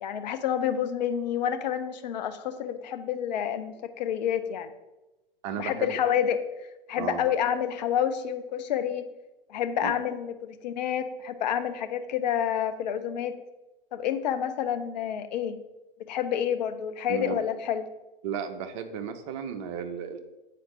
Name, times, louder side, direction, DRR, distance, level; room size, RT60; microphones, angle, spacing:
voice 1, 0.0-4.7 5.6-6.4 6.9-9.1 9.5-13.3 13.9-15.6 16.1-17.8, left 9 dB, 45° left, 9 dB, 0.5 m, -28 dB
voice 2, 5.4-6.0 7.0-7.2 9.8-9.9 17.1-17.4 18.2-20.2, right 7 dB, 30° right, 7 dB, 0.6 m, -34 dB
7.8 x 4.4 x 3.0 m, 1.0 s
figure-of-eight pair, 105°, 30 cm